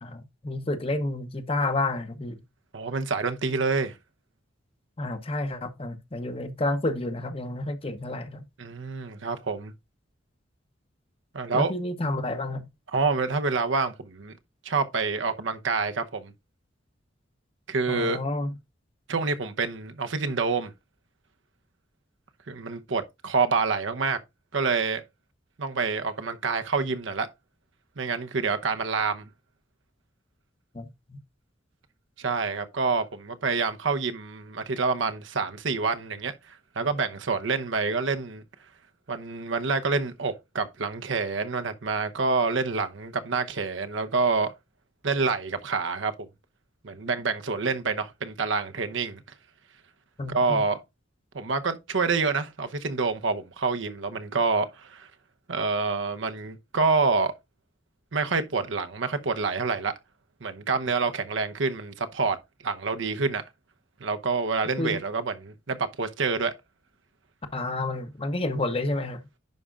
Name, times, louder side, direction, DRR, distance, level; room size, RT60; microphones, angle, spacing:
voice 1, 0.0-2.4 5.0-8.4 11.5-12.7 17.9-18.5 30.7-31.2 50.2-50.6 64.8-65.0 67.5-69.2, left 2 dB, 30° left, 0.8 m, -30 dB
voice 2, 2.7-4.0 8.6-9.7 11.3-11.7 12.9-14.3 14.6-16.3 17.7-18.2 19.1-20.7 22.5-24.2 24.5-25.0 25.6-27.3 28.0-29.3 32.2-38.4 39.1-44.5 45.0-46.1 46.8-49.2 50.3-50.8 51.3-55.1 55.5-57.3 58.1-59.9 60.4-62.4 62.6-63.4 64.0-66.5, right 4 dB, 75° right, 0.8 m, -27 dB
10.5 x 5.0 x 2.4 m
head